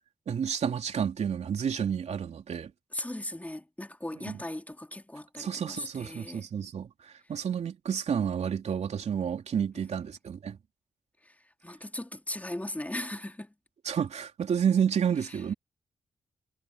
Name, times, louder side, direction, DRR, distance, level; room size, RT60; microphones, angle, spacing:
voice 1, 0.3-2.7 4.3-4.4 5.4-10.6 13.8-15.5, right 7 dB, 65° right, 3.2 m, -30 dB
voice 2, 2.9-6.5 9.7-9.9 11.2-11.3 11.6-13.5, left 1 dB, 10° left, 4.1 m, -38 dB
supercardioid pair, 45°, 12 cm